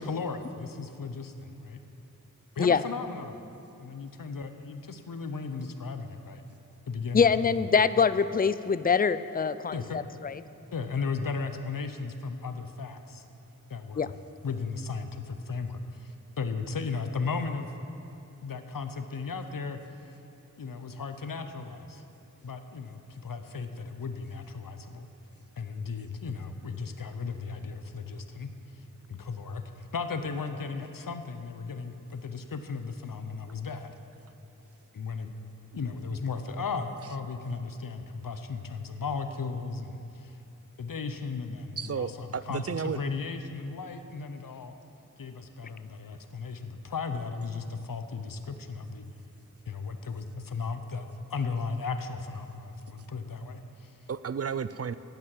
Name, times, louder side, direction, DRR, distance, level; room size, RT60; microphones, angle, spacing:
voice 1, 0.0-1.8 2.6-3.4 3.8-6.4 6.9-7.7 9.7-10.0 10.7-13.2 13.7-14.1 14.4-17.7 18.4-19.8 20.6-22.0 22.4-25.1 25.6-28.5 28.7-33.9 34.9-35.3 35.7-40.4 40.8-44.7 45.2-49.0 49.7-53.9, left 4 dB, 80° left, 8 dB, 0.8 m, -36 dB
voice 2, 7.1-9.7 10.2-10.3 14.0-14.1, left 6 dB, 25° left, 14 dB, 0.4 m, -23 dB
voice 3, 41.8-43.0 54.1-54.9, right 6 dB, 45° right, 14 dB, 0.4 m, -32 dB
10.5 x 9.2 x 7.5 m, 2.7 s
cardioid pair, 45°, 33 cm